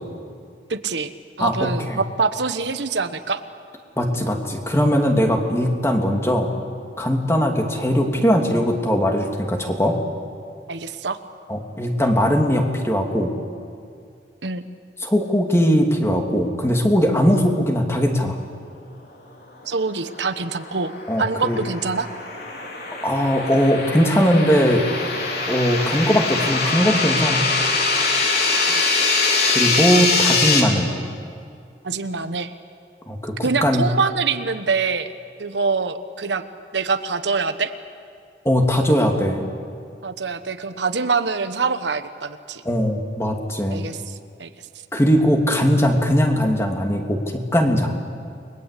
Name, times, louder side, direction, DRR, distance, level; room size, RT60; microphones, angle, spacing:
voice 1, 0.7-1.1 1.4-3.4 10.7-11.2 14.4-14.6 19.7-20.9 21.2-22.1 28.7-29.3 31.8-32.5 33.4-35.1 35.4-36.4 36.7-37.7 40.0-42.6 43.7-44.1 44.4-44.5, right 4 dB, 75° right, 9 dB, 1.2 m, -25 dB
voice 2, 1.4-2.0 4.0-6.5 7.0-10.0 11.5-13.3 15.0-18.4 21.1-21.6 23.0-24.9 25.5-27.5 29.5-30.9 33.1-33.8 38.4-39.5 42.6-43.8 44.9-48.0, equal, 15° left, 2 dB, 2.6 m, -20 dB
sound 1, 20.2-30.6, left 4 dB, 60° left, 3.8 m, -23 dB
29.5 x 22.0 x 8.4 m, 2.4 s
head